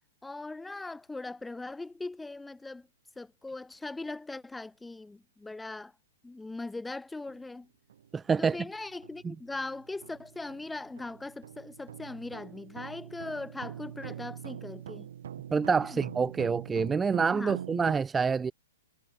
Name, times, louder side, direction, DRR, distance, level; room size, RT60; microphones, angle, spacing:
voice 1, 0.2-2.9 3.2-5.9 6.2-7.7 8.4-15.1 15.8-16.1 17.3-17.6, left 2 dB, 5° left, 2.7 m, -40 dB
sound 1, 7.3-7.4 7.9-8.1 8.5-17.9, right 10 dB, 65° right, 7.4 m, -44 dB
voice 2, 8.1-8.6 9.2-9.3 15.5-18.5, right 5 dB, 10° right, 0.5 m, -27 dB
hypercardioid pair, 135°, 0 cm